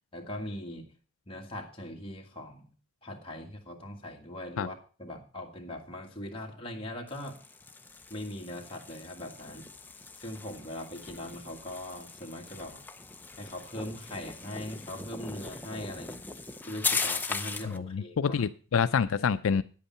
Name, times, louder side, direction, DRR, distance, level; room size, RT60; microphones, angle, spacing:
voice 1, 0.1-0.9 1.3-2.7 3.0-7.4 8.1-9.7 10.2-12.8 13.4-16.2 16.6-18.4, left 1 dB, 25° left, 1 dB, 1.8 m, -40 dB
sound 1, 7.1-17.8, left 4 dB, 10° left, 0.6 m, -38 dB
voice 2, 17.6-19.6, left 6 dB, 80° left, 12 dB, 0.4 m, -27 dB
9.9 x 8.4 x 5.6 m, 0.37 s
head